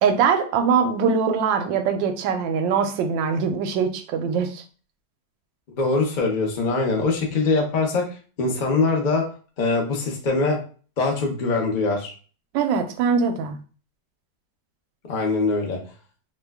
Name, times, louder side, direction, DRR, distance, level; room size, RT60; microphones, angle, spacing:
voice 1, 0.0-4.6 12.5-13.6, right 6 dB, 85° right, 7 dB, 1.3 m, -22 dB
voice 2, 5.8-8.0 8.4-9.3 9.6-10.6 11.0-12.1 15.1-15.8, left 3 dB, 60° left, 0 dB, 0.5 m, -22 dB
3.1 x 2.2 x 3.4 m, 0.38 s
omnidirectional pair, 2.0 m